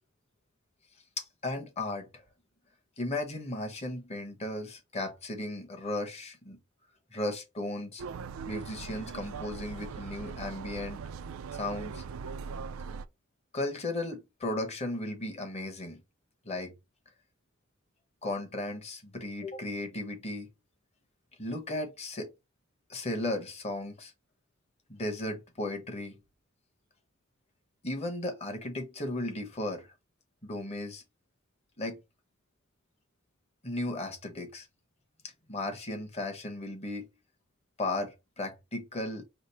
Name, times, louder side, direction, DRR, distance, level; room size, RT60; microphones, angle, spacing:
voice 1, 1.2-2.2 3.0-6.6 7.1-8.0 8.5-11.0 11.5-12.0 13.5-16.0 16.4-16.7 18.2-20.5 21.4-22.3 22.9-24.1 24.9-26.2 27.8-29.9 30.4-31.0 31.8-32.0 33.6-34.7 35.5-37.1 37.8-39.2, left 1 dB, 30° left, 1.1 m, -35 dB
sound 1, 8.0-13.1, right 5 dB, 75° right, 0.4 m, -40 dB
5.0 x 2.0 x 4.2 m
head